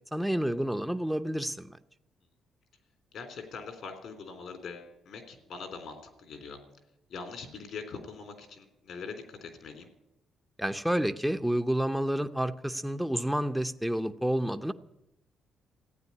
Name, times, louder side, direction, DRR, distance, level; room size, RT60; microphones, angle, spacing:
voice 1, 0.1-1.8 10.6-14.7, right 1 dB, ahead, 7 dB, 0.7 m, -29 dB
voice 2, 3.1-6.6 7.1-9.9, left 5 dB, 70° left, 7 dB, 3.5 m, -42 dB
15.0 x 9.1 x 9.8 m, 0.87 s
cardioid pair, 90°, 0 cm